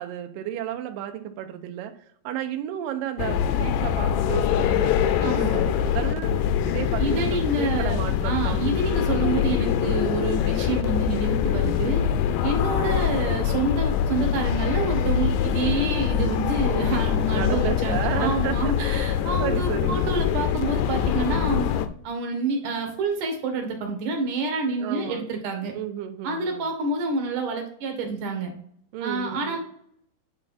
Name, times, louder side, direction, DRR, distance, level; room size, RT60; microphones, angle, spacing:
voice 1, 0.0-1.9 2.2-8.6 15.7-15.9 17.3-18.7 19.4-20.0 24.8-25.2 25.7-26.7 28.9-29.6, right 11 dB, 80° right, 7 dB, 2.0 m, -32 dB
sound 1, 3.2-21.9, left 9 dB, 85° left, 2.7 m, -24 dB
voice 2, 5.2-5.6 7.0-12.0 12.4-21.7 22.0-25.7 26.2-28.5 29.0-29.6, right 3 dB, 60° right, 3 dB, 2.5 m, -28 dB
8.9 x 4.3 x 4.3 m, 0.66 s
omnidirectional pair, 4.8 m